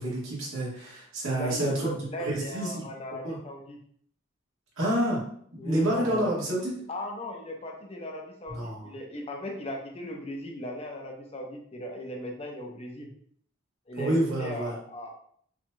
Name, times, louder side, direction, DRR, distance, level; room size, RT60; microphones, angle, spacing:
voice 1, 0.0-1.9 2.2-2.8 3.2-3.4 4.8-5.2 5.5-6.7 8.5-8.9 14.0-14.7, right 1 dB, 85° right, -5 dB, 1.6 m, -28 dB
voice 2, 1.4-3.8 5.6-6.3 6.9-13.1 13.9-15.1, equal, 30° left, 1 dB, 0.6 m, -37 dB
5.8 x 2.7 x 2.2 m, 0.63 s
head